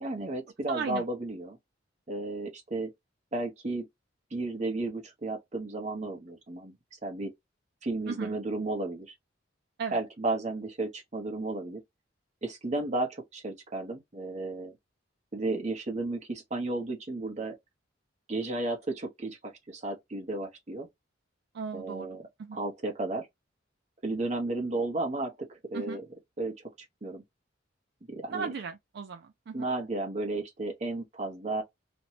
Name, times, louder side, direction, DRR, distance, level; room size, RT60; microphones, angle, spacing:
voice 1, 0.0-1.6 2.1-2.9 3.3-3.9 4.3-6.8 7.0-7.3 7.8-9.1 9.9-11.8 12.4-14.7 15.3-17.6 18.3-20.9 21.7-22.2 22.5-23.3 24.0-26.0 26.4-26.7 27.0-27.2 28.1-28.5 29.5-31.6, right 2 dB, 35° right, 0.8 m, -33 dB
voice 2, 0.7-1.0 8.1-8.4 9.8-10.0 21.5-22.1 22.4-22.6 25.7-26.0 28.3-29.7, right 5 dB, 55° right, 0.3 m, -36 dB
2.6 x 2.2 x 2.8 m
head